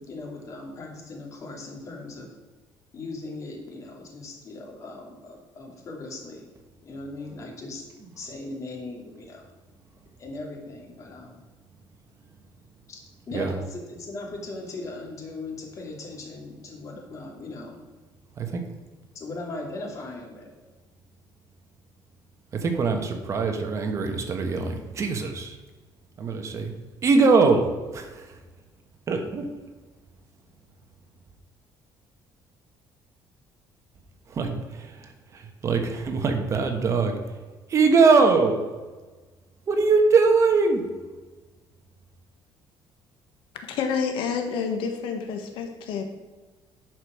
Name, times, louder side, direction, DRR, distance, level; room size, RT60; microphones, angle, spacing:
voice 1, 0.0-2.3 2.9-6.4 6.8-7.8 8.2-9.4 10.2-11.4 12.9-13.0 13.3-17.8 19.1-20.5, left 2 dB, 40° left, 1 dB, 2.5 m, -38 dB
voice 2, 22.5-25.6 26.2-26.7 27.0-28.3 29.1-29.7 34.3-37.2 37.7-38.7 39.7-40.9, right 4 dB, 35° right, 5 dB, 1.3 m, -22 dB
voice 3, 43.7-46.0, left 6 dB, 80° left, 5 dB, 1.4 m, -28 dB
10.5 x 5.2 x 6.2 m, 1.3 s
cardioid pair, 150°, 8 cm